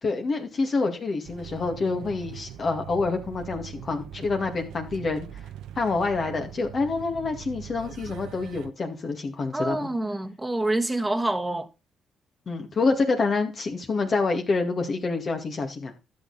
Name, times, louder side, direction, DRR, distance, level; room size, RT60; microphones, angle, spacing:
voice 1, 0.0-5.3 5.8-9.9 12.5-15.9, left 3 dB, 45° left, 2.2 m, -27 dB
sound 1, 1.2-8.7, right 10 dB, 90° right, 1.0 m, -42 dB
voice 2, 9.5-11.7, right 2 dB, 10° right, 1.5 m, -27 dB
12.0 x 6.8 x 4.2 m
cardioid pair, 90°, 0 cm